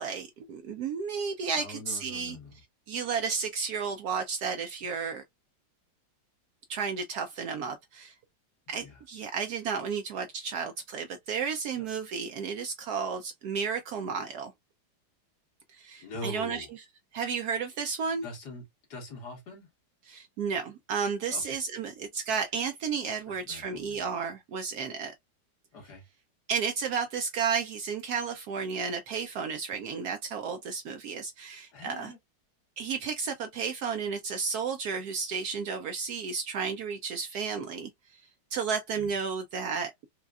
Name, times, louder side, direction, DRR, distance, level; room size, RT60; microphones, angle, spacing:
voice 1, 0.0-2.4 2.9-5.2 6.7-8.1 8.7-14.5 15.7-16.7 17.1-18.2 20.1-25.1 26.5-32.1 32.8-37.9 38.5-40.1, right 6 dB, 70° right, 0.9 m, -32 dB
voice 2, 1.5-2.6 8.7-9.0 11.8-11.9 16.0-16.7 18.2-19.7 21.3-21.6 23.3-24.0 25.7-26.0 31.7-32.2 38.9-39.1, left 2 dB, 60° left, 2.0 m, -43 dB
4.7 x 2.3 x 2.3 m
omnidirectional pair, 2.0 m